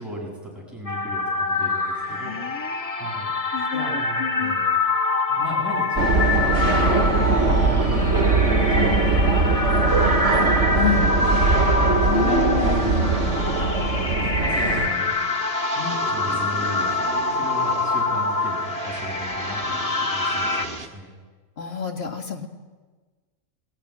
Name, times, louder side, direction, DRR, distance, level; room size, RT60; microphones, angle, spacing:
voice 1, 0.0-2.4 3.0-3.3 3.7-4.6 5.3-10.2 12.0-13.0 14.2-15.2 15.8-16.9 17.3-21.1, equal, ahead, -2 dB, 7.6 m, -36 dB
sound 1, 0.9-20.7, left 3 dB, 30° left, 1.2 m, -25 dB
voice 2, 2.1-3.2 3.5-4.6 10.7-11.1 12.0-13.5 14.3-14.9 21.6-22.5, left 6 dB, 50° left, 4 dB, 2.2 m, -30 dB
sound 2, 6.0-14.9, right 3 dB, 65° right, 2.5 m, -20 dB
sound 3, 9.9-20.9, right 3 dB, 40° right, 2.0 m, -36 dB
21.0 x 17.5 x 9.9 m, 1.3 s
omnidirectional pair, 1.3 m